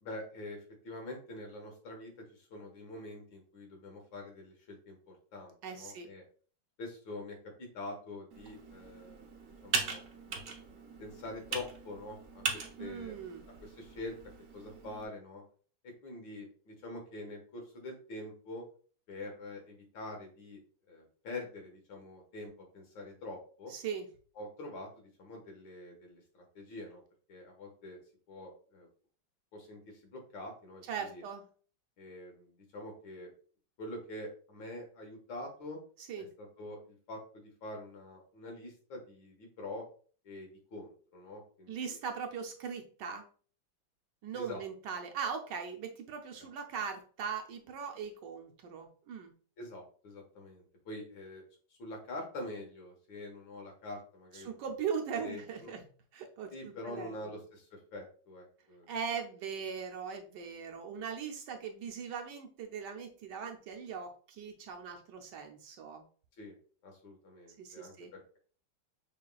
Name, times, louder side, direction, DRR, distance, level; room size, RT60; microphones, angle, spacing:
voice 1, 0.0-6.2 6.8-9.2 9.6-10.6 11.0-13.1 13.6-14.2 14.5-15.4 15.8-18.6 19.1-20.6 20.9-23.7 24.4-27.0 27.3-28.0 28.3-28.9 29.5-31.2 32.0-33.3 33.8-35.8 36.4-39.9 40.2-41.8 44.3-44.6 49.6-51.4 51.7-54.6 55.1-55.8 56.5-58.9 66.4-66.6 66.8-68.4, left 2 dB, 75° left, 1 dB, 2.2 m, -45 dB
voice 2, 5.6-6.1 12.8-13.4 23.7-24.1 30.9-31.4 36.0-36.3 41.7-43.3 44.2-49.3 54.3-55.8 56.1-57.4 58.9-66.1 67.6-68.1, right 6 dB, 70° right, 3 dB, 1.2 m, -40 dB
Computer keyboard, 8.3-15.1, right 5 dB, 50° right, 1.0 m, -40 dB
6.6 x 3.2 x 2.3 m, 0.41 s
omnidirectional pair, 2.1 m